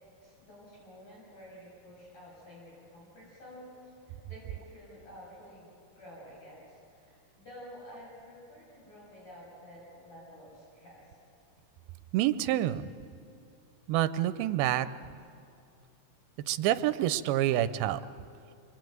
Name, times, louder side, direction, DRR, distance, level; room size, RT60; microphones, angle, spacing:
voice 1, 0.2-11.2, equal, 45° left, -6 dB, 8.7 m, -51 dB
voice 2, 12.1-12.9 13.9-14.9 16.5-18.0, right 13 dB, 80° right, 12 dB, 2.5 m, -27 dB
27.0 x 22.0 x 9.3 m, 2.5 s
omnidirectional pair, 4.4 m